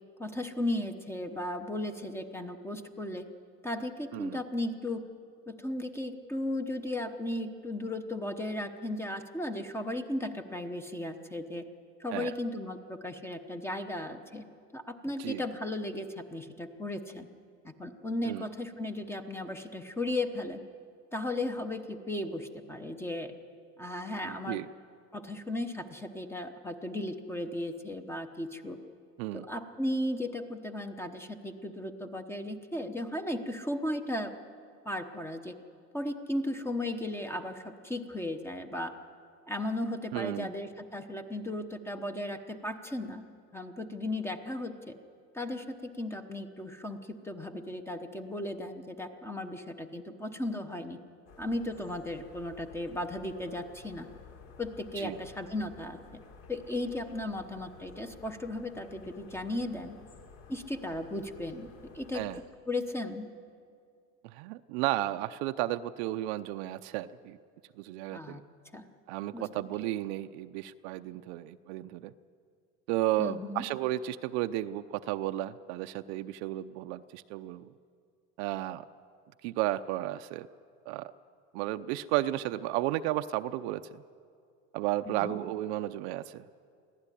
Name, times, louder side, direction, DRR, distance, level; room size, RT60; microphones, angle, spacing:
voice 1, 0.2-3.2 3.6-5.0 5.5-11.7 12.0-14.5 14.7-17.3 17.6-20.6 21.1-23.3 23.8-24.6 25.1-28.8 29.3-34.3 34.8-35.5 35.9-38.9 39.5-43.2 43.5-45.0 45.3-51.0 51.4-54.1 54.6-56.0 56.5-60.0 60.5-61.7 61.9-62.2 62.7-63.3 68.1-68.4 68.7-68.8 69.3-69.5 73.2-73.6 85.1-85.4, left 1 dB, 5° left, 7 dB, 0.9 m, -36 dB
voice 2, 24.2-24.7 29.2-29.4 40.1-40.5 55.0-55.2 62.1-62.4 64.2-67.4 67.8-68.4 69.1-72.1 72.9-77.7 78.4-78.8 79.4-80.5 80.9-81.1 81.5-84.0 84.7-86.5, right 15 dB, 75° right, 9 dB, 0.7 m, -33 dB
sound 1, 51.3-62.4, left 5 dB, 65° left, 3.7 m, -53 dB
24.0 x 16.0 x 9.9 m, 2.3 s
cardioid pair, 160°, 33 cm